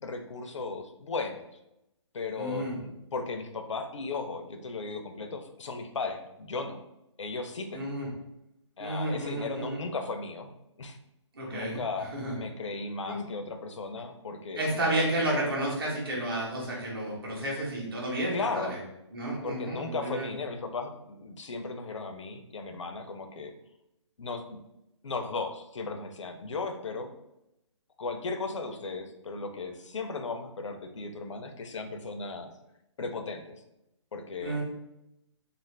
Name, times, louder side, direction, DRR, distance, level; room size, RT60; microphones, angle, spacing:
voice 1, 0.0-1.4 2.1-6.8 7.2-7.9 8.8-10.5 10.8-11.0 11.5-12.1 12.3-14.6 18.3-18.8 19.4-23.5 24.2-24.6 25.0-27.1 28.0-32.5 33.0-33.5 34.1-34.6, left 3 dB, 75° left, 6 dB, 0.5 m, -36 dB
voice 2, 2.4-2.8 7.7-8.1 8.8-9.8 11.3-11.8 12.1-12.3 13.0-13.2 14.6-18.8 19.1-20.3 34.4-34.6, right 1 dB, 45° right, -5 dB, 0.8 m, -31 dB
2.4 x 2.4 x 3.2 m, 0.86 s
hypercardioid pair, 175°, 16 cm